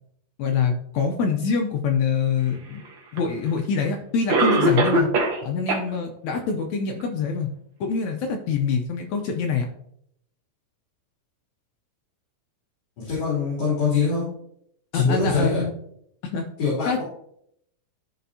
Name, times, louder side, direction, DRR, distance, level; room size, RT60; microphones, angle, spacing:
voice 1, 0.4-2.8 3.1-5.1 5.4-7.5 7.8-9.7 14.9-15.7 16.2-16.4 16.9-17.0, left 5 dB, 80° left, 3 dB, 1.6 m, -25 dB
Cough, 3.2-3.3 4.3-5.4 5.7-5.8 6.3-6.4 7.0-7.1, right 2 dB, 75° right, 1.1 m, -20 dB
voice 2, 13.1-14.3 14.9-15.6 16.6-16.9, left 4 dB, 45° left, -8 dB, 3.6 m, -23 dB
13.5 x 4.5 x 2.7 m, 0.71 s
omnidirectional pair, 3.9 m